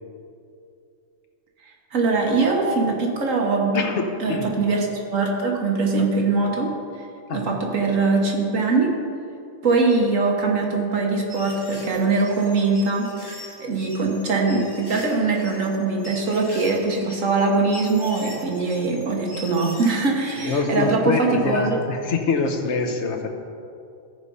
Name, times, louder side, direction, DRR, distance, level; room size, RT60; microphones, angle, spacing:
voice 1, 1.9-3.8 4.2-6.7 7.3-8.9 9.6-13.3 13.6-21.8, right 3 dB, 65° right, 0 dB, 1.6 m, -22 dB
voice 2, 3.7-4.5 6.0-6.1 7.3-7.5 20.4-23.3, left 4 dB, 60° left, 4 dB, 1.2 m, -24 dB
sound 1, 11.3-20.9, equal, 15° left, 1.7 m, -42 dB
14.0 x 4.8 x 5.4 m, 2.5 s
omnidirectional pair, 1.5 m